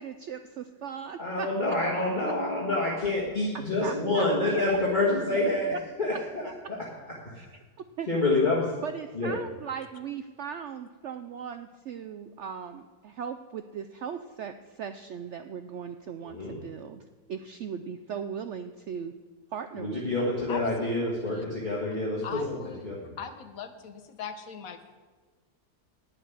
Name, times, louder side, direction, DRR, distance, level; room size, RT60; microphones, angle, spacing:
voice 1, 0.0-1.5 3.8-4.6 5.7-5.8 6.4-6.5 7.4-7.5 8.0-8.1 8.8-17.0 17.3-19.1 19.5-20.3, right 7 dB, 80° right, 9 dB, 0.6 m, -38 dB
voice 2, 1.2-5.7 6.0-6.8 7.2-7.4 8.1-8.7 9.1-9.3 16.2-16.5 19.7-23.1, left 2 dB, 30° left, -5 dB, 2.0 m, -27 dB
voice 3, 20.5-21.4 22.2-25.0, left 6 dB, 60° left, 9 dB, 1.2 m, -41 dB
11.0 x 7.0 x 9.5 m, 1.4 s
omnidirectional pair, 1.8 m